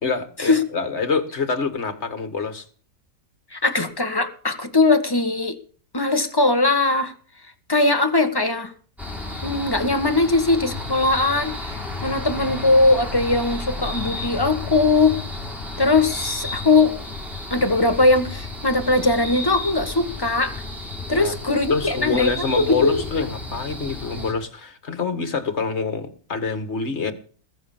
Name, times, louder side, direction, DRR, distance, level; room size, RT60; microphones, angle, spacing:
voice 1, 0.0-2.6 21.1-21.3 21.7-27.1, left 5 dB, 45° left, 2.1 m, -26 dB
voice 2, 3.5-5.6 5.9-7.1 7.7-8.7 9.4-11.7 12.0-15.2 15.8-16.9 17.5-20.6 21.1-23.2, left 2 dB, 15° left, 1.6 m, -20 dB
sound 1, 9.0-24.3, left 2 dB, ahead, 4.4 m, -32 dB
20.5 x 7.2 x 7.3 m
omnidirectional pair, 1.7 m